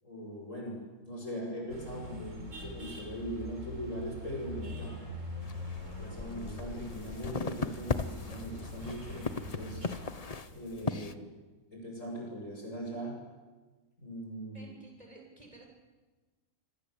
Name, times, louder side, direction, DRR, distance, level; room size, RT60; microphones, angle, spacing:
voice 1, 0.0-5.0 6.0-9.8 10.5-11.2 11.7-13.2 14.0-14.7, equal, 65° left, 0 dB, 8.2 m, -40 dB
sound 1, 1.7-10.1, left 1 dB, 65° right, 4.5 m, -43 dB
sound 2, 5.4-11.1, left 4 dB, 30° left, 1.0 m, -38 dB
voice 2, 14.5-15.7, right 2 dB, 25° right, 0 dB, 7.5 m, -53 dB
26.5 x 25.5 x 8.4 m, 1.3 s
omnidirectional pair, 1.4 m